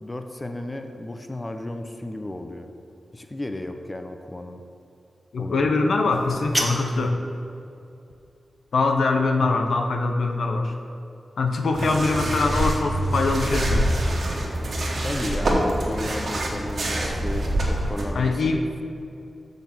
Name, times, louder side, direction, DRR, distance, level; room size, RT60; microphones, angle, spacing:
voice 1, 0.0-2.7 3.1-4.6 5.4-6.0 15.0-18.6, left 1 dB, 25° left, 6 dB, 0.6 m, -34 dB
voice 2, 5.3-7.2 8.7-10.7 11.4-13.9 18.1-18.7, left 3 dB, 80° left, 4 dB, 0.8 m, -23 dB
sound 1, 6.1-7.1, equal, 5° left, 1.1 m, -29 dB
sound 2, 11.7-18.1, right 1 dB, 65° right, 1.6 m, -25 dB
6.6 x 6.3 x 5.9 m, 2.6 s
cardioid pair, 70°, 0 cm